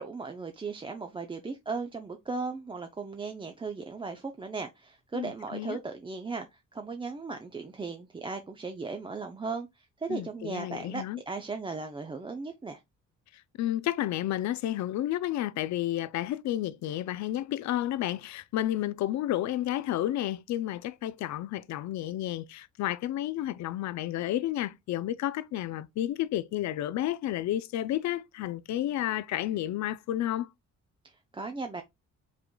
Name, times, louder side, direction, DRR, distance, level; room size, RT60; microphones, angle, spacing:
voice 1, 0.0-12.8 31.0-31.8, right 4 dB, 15° right, 0.5 m, -37 dB
voice 2, 5.1-5.8 10.1-11.2 13.6-30.5, left 13 dB, 65° left, 0.5 m, -31 dB
4.9 x 3.7 x 2.2 m
cardioid pair, 90°, 30 cm